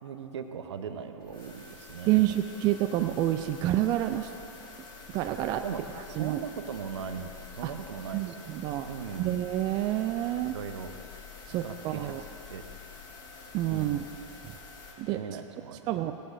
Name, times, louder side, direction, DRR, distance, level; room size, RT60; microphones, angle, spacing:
voice 1, 0.0-2.3 5.6-5.8 6.1-8.6 8.8-9.4 10.4-10.9 11.6-12.1 12.5-12.7 13.7-14.1 15.1-16.1, right 7 dB, 60° right, 7 dB, 0.9 m, -39 dB
sound 1, 1.2-14.9, left 4 dB, 25° left, 2.7 m, -47 dB
voice 2, 2.1-4.3 5.1-5.6 6.2-6.4 7.6-7.7 8.1-8.9 9.2-10.6 11.5-12.2 13.5-14.0 15.0-15.2 15.9-16.1, right 14 dB, 25° right, 7 dB, 0.4 m, -28 dB
18.5 x 15.5 x 2.6 m, 2.9 s
figure-of-eight pair, 105°, 16 cm